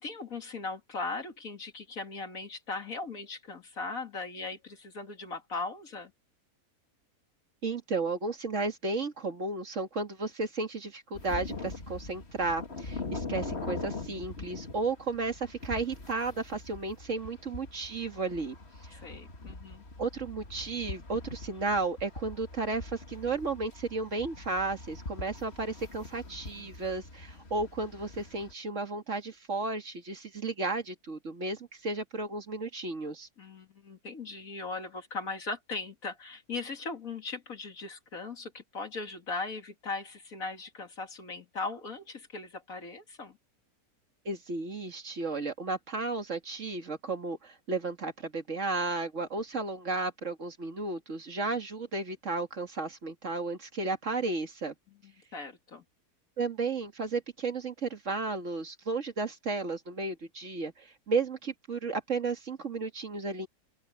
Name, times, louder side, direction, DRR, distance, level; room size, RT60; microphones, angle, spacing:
voice 1, 0.0-6.1 18.9-19.8 33.4-43.4 55.0-55.8, left 3 dB, 60° left, 2.7 m, -39 dB
voice 2, 7.6-18.6 18.8-19.1 20.0-33.3 44.3-54.7 56.4-63.5, right 3 dB, 50° right, 2.3 m, -33 dB
sound 1, 11.1-28.5, left 3 dB, 45° left, 2.3 m, -42 dB
open air
omnidirectional pair, 1.6 m